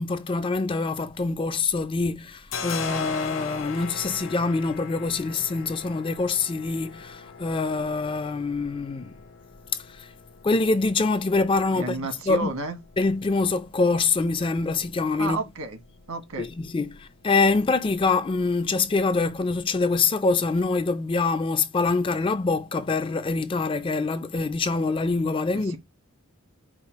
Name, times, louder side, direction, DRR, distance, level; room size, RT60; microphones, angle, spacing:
voice 1, 0.0-9.2 9.7-10.1 10.4-12.5 13.0-15.4 16.4-25.8, left 3 dB, 25° left, 0.3 m, -25 dB
sound 1, 1.1-19.6, left 5 dB, 60° left, 0.8 m, -41 dB
voice 2, 11.7-12.8 15.2-15.8 16.1-16.5 25.5-25.8, right 2 dB, 75° right, 1.3 m, -31 dB
5.0 x 2.3 x 4.4 m
head